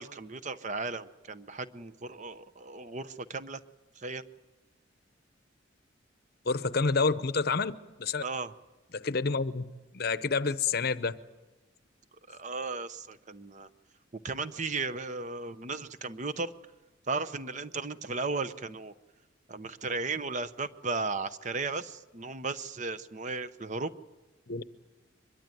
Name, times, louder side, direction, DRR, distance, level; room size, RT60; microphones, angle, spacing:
voice 1, 0.0-3.6 4.0-4.2 8.2-8.5 12.3-13.7 14.1-16.5 17.1-18.9 19.5-23.9, right 3 dB, 35° right, 0.8 m, -35 dB
voice 2, 6.5-7.7 8.0-8.2 8.9-9.6 9.9-11.2 24.5-24.6, left 4 dB, 50° left, 0.8 m, -28 dB
23.5 x 22.0 x 9.2 m
head